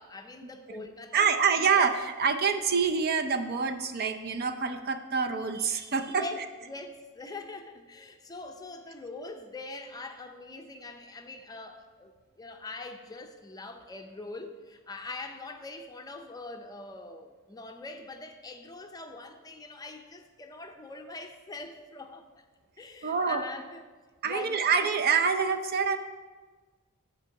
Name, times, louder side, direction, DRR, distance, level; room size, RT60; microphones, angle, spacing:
voice 1, 0.0-1.3 1.6-1.7 6.0-12.1 12.4-22.4 22.8-23.8 24.2-24.7, left 3 dB, 20° left, 5 dB, 0.5 m, -43 dB
voice 2, 1.1-6.2 23.0-23.4 24.2-26.0, right 5 dB, 45° right, 7 dB, 0.5 m, -26 dB
9.2 x 4.6 x 6.3 m, 1.4 s
head